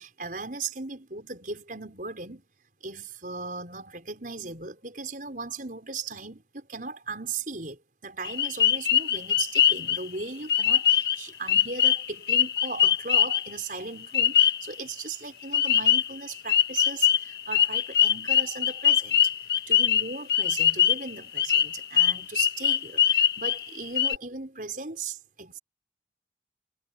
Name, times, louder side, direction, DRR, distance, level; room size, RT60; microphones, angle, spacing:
voice 1, 0.0-2.4 2.8-19.3 19.7-25.6, right 4 dB, 50° right, 5.9 m, -37 dB
sound 1, 8.2-10.0 10.5-11.2 11.5-13.5 14.1-14.7 15.5-16.2 16.5-21.1 21.4-23.7 24.0-24.2, left 9 dB, 60° left, 1.8 m, -22 dB
head